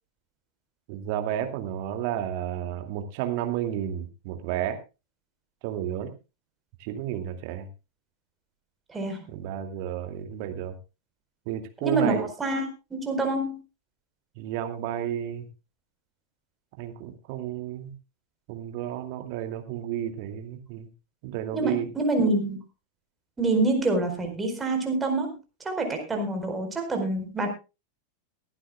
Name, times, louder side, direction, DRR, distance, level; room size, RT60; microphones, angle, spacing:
voice 1, 0.9-4.8 5.6-6.1 6.8-7.7 9.3-10.8 11.5-12.3 14.4-15.5 16.8-17.9 18.5-20.9 21.2-21.9, right 11 dB, 45° right, 6 dB, 2.4 m, -32 dB
voice 2, 8.9-9.3 11.8-13.6 21.5-22.6 23.4-25.4 25.6-27.5, right 2 dB, 15° right, 4 dB, 4.5 m, -26 dB
23.0 x 11.5 x 2.3 m, 0.29 s
figure-of-eight pair, 90°, 0 cm